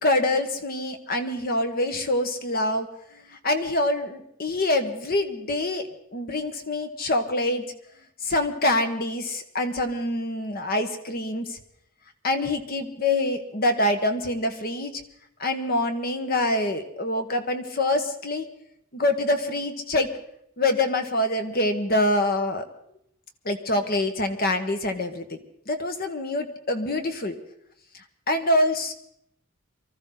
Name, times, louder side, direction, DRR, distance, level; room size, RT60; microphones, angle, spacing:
voice 1, 0.0-7.6 8.2-11.6 12.2-15.0 15.4-18.5 18.9-20.1 20.6-22.6 23.4-25.4 25.7-27.4 27.9-28.9, left 1 dB, 45° left, 7 dB, 1.4 m, -25 dB
24.0 x 14.0 x 3.9 m, 0.73 s
head